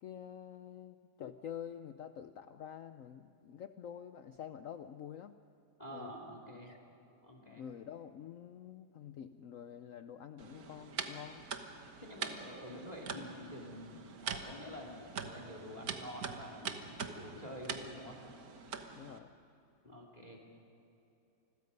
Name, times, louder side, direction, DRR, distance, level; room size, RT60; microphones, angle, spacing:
voice 1, 0.0-5.3 5.9-6.1 6.7-6.8 7.4-11.4 18.9-19.3, left 9 dB, 70° left, 10 dB, 0.8 m, -48 dB
voice 2, 5.8-6.8 7.2-7.6 12.0-18.2 19.8-20.5, equal, 20° left, 1 dB, 2.5 m, -48 dB
sound 1, 10.4-19.2, right 6 dB, 55° right, 1.6 m, -44 dB
28.5 x 21.0 x 5.4 m, 2.9 s
omnidirectional pair, 2.0 m